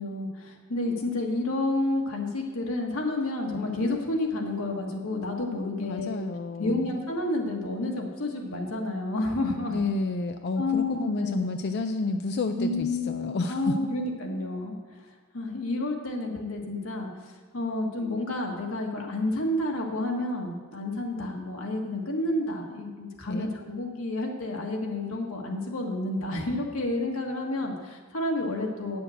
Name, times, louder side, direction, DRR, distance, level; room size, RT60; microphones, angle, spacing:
voice 1, 0.0-6.2 6.6-9.8 10.6-11.5 12.6-15.1 15.3-29.0, left 2 dB, 85° left, 0 dB, 1.5 m, -30 dB
voice 2, 5.8-6.9 9.7-13.7 23.3-23.5, left 3 dB, 55° left, 7 dB, 0.4 m, -30 dB
8.8 x 6.9 x 6.4 m, 1.4 s
head